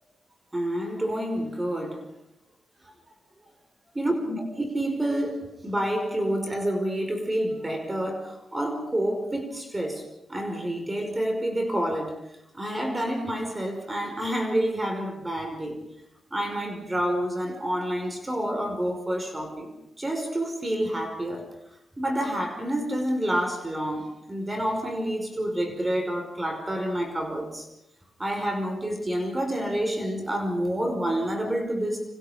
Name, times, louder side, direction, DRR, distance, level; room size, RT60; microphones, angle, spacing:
voice 1, 0.5-2.0 4.0-10.0 10.3-12.1 12.5-15.8 16.3-21.5 22.0-27.7 28.2-32.0, right 1 dB, 20° right, 5 dB, 5.4 m, -28 dB
29.0 x 26.5 x 5.2 m, 0.81 s
cardioid pair, 90°, 0 cm